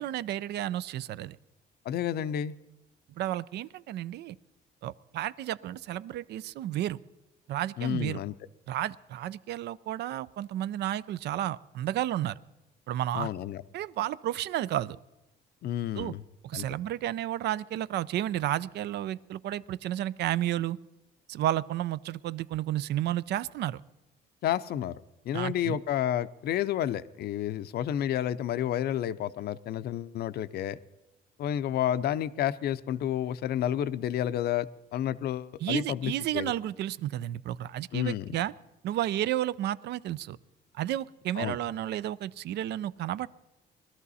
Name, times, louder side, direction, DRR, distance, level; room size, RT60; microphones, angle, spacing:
voice 1, 0.0-1.4 3.2-4.4 4.8-7.0 7.5-8.2 8.7-12.4 12.9-13.3 13.7-15.0 16.0-16.1 16.4-20.8 21.3-23.8 25.3-25.8 35.6-38.5 38.8-40.4 40.7-43.3, right 13 dB, 70° right, 18 dB, 0.5 m, -32 dB
voice 2, 1.9-2.5 7.8-8.3 13.1-13.6 15.6-16.2 16.5-16.7 24.4-24.9 25.3-30.8 31.4-36.5 37.9-38.3 41.4-41.6, left 11 dB, 60° left, 15 dB, 0.5 m, -30 dB
21.0 x 13.0 x 4.1 m, 0.98 s
cardioid pair, 130°, 18 cm